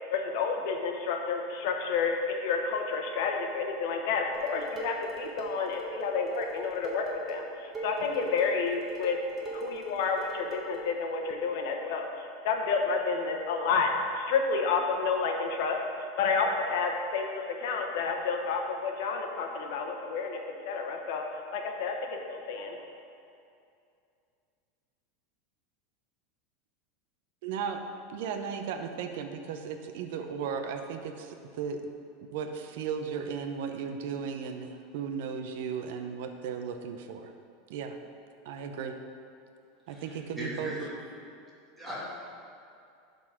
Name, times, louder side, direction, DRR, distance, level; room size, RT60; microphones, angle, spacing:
voice 1, 0.1-9.2 9.4-20.4 20.6-21.2 21.5-22.8, left 5 dB, 65° left, 3 dB, 1.1 m, -30 dB
Dishes pots and pans, 4.3-10.9, right 3 dB, 15° right, 1.3 m, -41 dB
voice 2, 27.4-27.8 28.1-31.8 32.3-37.3 37.7-38.0 38.4-38.9 39.9-40.8, right 6 dB, 70° right, 6 dB, 0.7 m, -36 dB
voice 3, 39.9-40.9 41.8-42.0, equal, ahead, -9 dB, 2.2 m, -39 dB
12.0 x 4.0 x 4.9 m, 2.5 s
supercardioid pair, 150°, 0 cm